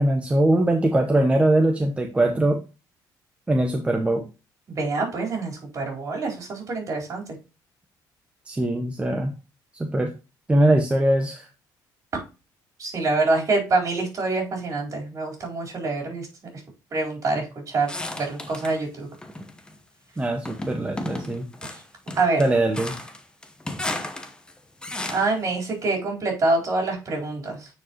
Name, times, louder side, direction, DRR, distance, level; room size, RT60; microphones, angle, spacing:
voice 1, 0.0-2.6 3.5-4.2 8.5-9.3 9.7-10.1 10.5-11.5 20.2-21.5 22.4-22.9, right 1 dB, 15° right, 3 dB, 0.9 m, -21 dB
voice 2, 4.7-7.2 12.8-16.3 16.9-19.1 22.1-22.4 25.1-27.7, right 3 dB, 40° right, -1 dB, 4.2 m, -25 dB
sound 1, 17.9-18.8 19.2-19.8 20.4-25.4, left 1 dB, 10° left, 1.0 m, -34 dB
9.2 x 4.8 x 3.0 m, 0.29 s
cardioid pair, 105°, 8 cm